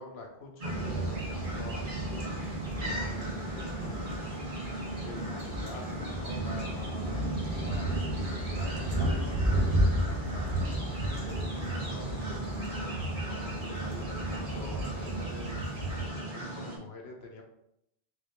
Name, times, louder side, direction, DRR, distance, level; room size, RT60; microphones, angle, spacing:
voice 1, 0.0-2.4 2.8-4.0 5.0-10.5 11.1-15.6 16.0-17.4, left 3 dB, 85° left, 2 dB, 1.1 m, -47 dB
sound 1, 0.6-16.8, right 1 dB, 55° right, 1.1 m, -37 dB
sound 2, 0.7-16.1, right 1 dB, 75° right, 1.1 m, -33 dB
3.7 x 3.0 x 3.6 m, 0.79 s
omnidirectional pair, 1.1 m